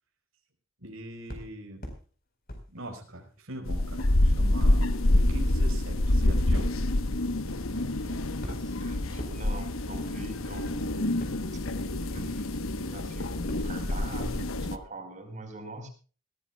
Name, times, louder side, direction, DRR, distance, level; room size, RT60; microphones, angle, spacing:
voice 1, 0.8-1.9 2.7-6.7, right 1 dB, 85° right, 2 dB, 5.1 m, -42 dB
sound 1, 1.3-2.0 2.5-3.4 3.9-13.0 13.5-14.5 14.8-14.9, equal, 45° left, 4.5 m, -46 dB
sound 2, 3.7-14.8, left 1 dB, 85° left, 1.1 m, -27 dB
voice 2, 7.7-11.6 12.0-12.4 12.9-15.9, right 1 dB, 35° right, 5 dB, 4.7 m, -44 dB
21.0 x 16.0 x 2.3 m, 0.38 s
head